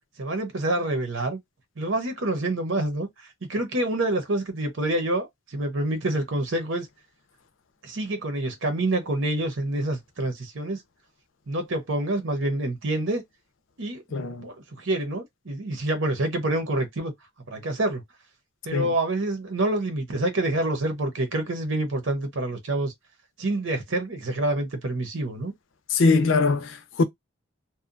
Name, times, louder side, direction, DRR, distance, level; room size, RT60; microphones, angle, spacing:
voice 1, 0.2-1.4 1.8-6.9 7.8-10.8 11.5-13.2 13.8-14.0 14.4-17.1 17.5-18.0 18.6-22.9 23.4-25.5, right 1 dB, 75° right, 0.9 m, -27 dB
voice 2, 14.1-14.5 18.7-18.9 25.9-27.0, left 3 dB, 75° left, 0.5 m, -22 dB
2.7 x 2.2 x 2.5 m
head